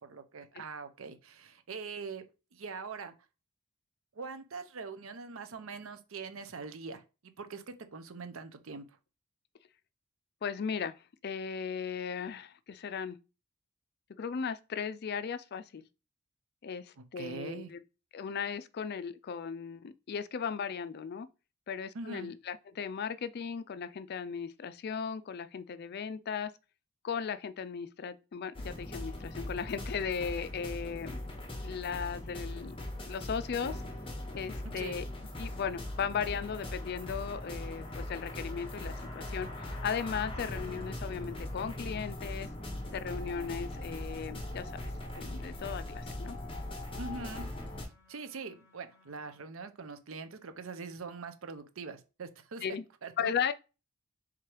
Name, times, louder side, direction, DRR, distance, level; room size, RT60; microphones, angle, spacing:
voice 1, 0.1-2.2 2.5-3.1 4.1-7.0 7.4-8.8 17.0-17.7 21.9-22.3 34.8-35.0 47.0-47.5 48.1-52.6 53.0-53.3, right 4 dB, 65° right, 0.6 m, -43 dB
voice 2, 10.4-10.9 11.2-13.2 14.2-15.8 16.6-17.8 18.1-21.3 21.7-26.5 27.0-31.2 31.6-32.8 33.1-33.8 34.3-35.0 35.4-42.5 42.9-44.9 45.2-46.4 52.6-52.8 53.2-53.5, left 6 dB, 45° left, 0.4 m, -37 dB
sound 1, 28.5-47.9, left 1 dB, 25° left, 0.9 m, -40 dB
sound 2, 45.3-49.4, left 4 dB, 15° right, 1.4 m, -65 dB
3.6 x 3.2 x 4.5 m
head